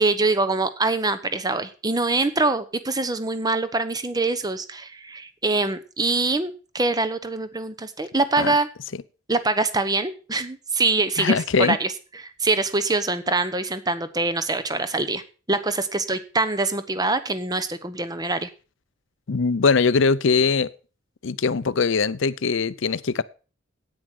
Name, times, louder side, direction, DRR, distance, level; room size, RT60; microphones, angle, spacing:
voice 1, 0.0-8.7 9.3-15.2 15.5-18.5, right 3 dB, 20° right, 0.9 m, -24 dB
voice 2, 11.2-11.8 19.3-20.7 21.2-23.2, left 4 dB, 65° left, 0.6 m, -21 dB
9.5 x 9.2 x 6.3 m
head